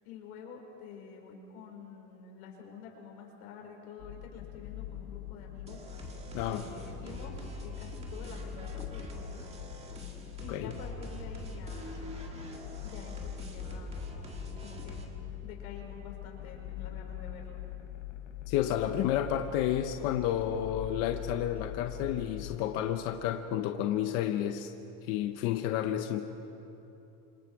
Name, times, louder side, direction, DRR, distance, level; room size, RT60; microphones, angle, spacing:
voice 1, 0.0-6.2 6.5-9.5 10.4-12.6 12.8-14.3 14.6-15.1 15.4-17.6, left 6 dB, 80° left, 1 dB, 5.3 m, -48 dB
sound 1, 4.0-22.6, left 13 dB, 55° left, 1.1 m, -43 dB
sound 2, 5.7-15.1, right 2 dB, 15° right, 1.7 m, -44 dB
voice 2, 18.5-24.7 25.1-26.2, left 11 dB, 35° left, 7 dB, 0.7 m, -31 dB
29.0 x 27.0 x 4.7 m, 2.9 s
supercardioid pair, 175°, 43 cm